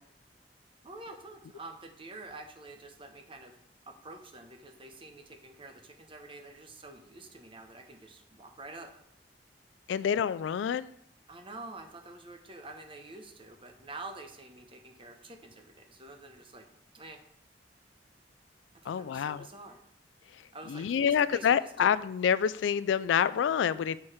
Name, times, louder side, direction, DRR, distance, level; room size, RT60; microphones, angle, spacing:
voice 1, 0.8-3.5 3.9-8.9 11.3-16.6 16.9-17.2 18.8-19.8 20.5-22.0, right 2 dB, 30° right, 0.8 m, -47 dB
voice 2, 9.9-10.9 18.9-19.5 20.7-24.0, left 8 dB, 90° left, 0.3 m, -27 dB
7.0 x 4.5 x 4.9 m
head